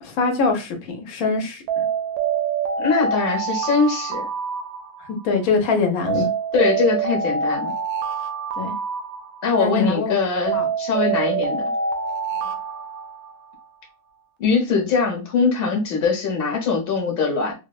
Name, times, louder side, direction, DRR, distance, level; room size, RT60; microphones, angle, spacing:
voice 1, 0.0-1.8 5.0-6.3 8.6-8.7 9.5-10.2 10.5-10.7 12.4-12.5, left 4 dB, 80° left, 1.2 m, -23 dB
Alarm, 1.7-5.4 6.1-9.8 10.5-13.7, right 6 dB, 90° right, 1.1 m, -26 dB
voice 2, 2.8-4.3 6.5-7.7 9.4-11.6 14.4-17.5, left 4 dB, 45° left, 1.0 m, -22 dB
3.4 x 2.1 x 2.2 m
omnidirectional pair, 1.5 m